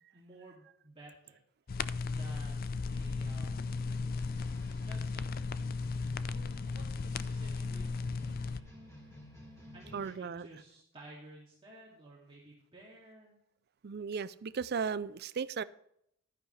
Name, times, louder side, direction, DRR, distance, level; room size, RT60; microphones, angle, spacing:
voice 1, 0.0-1.4 2.1-3.7 4.8-5.3 6.2-8.6 9.7-13.3, right 2 dB, 25° right, -5 dB, 2.6 m, -54 dB
sound 1, 1.7-8.6, left 4 dB, 45° left, 0.4 m, -36 dB
sound 2, 3.0-10.1, left 1 dB, 15° left, 5.2 m, -52 dB
voice 2, 9.9-10.5 13.8-15.6, right 6 dB, 55° right, 16 dB, 0.5 m, -36 dB
11.5 x 10.5 x 3.3 m, 0.73 s
head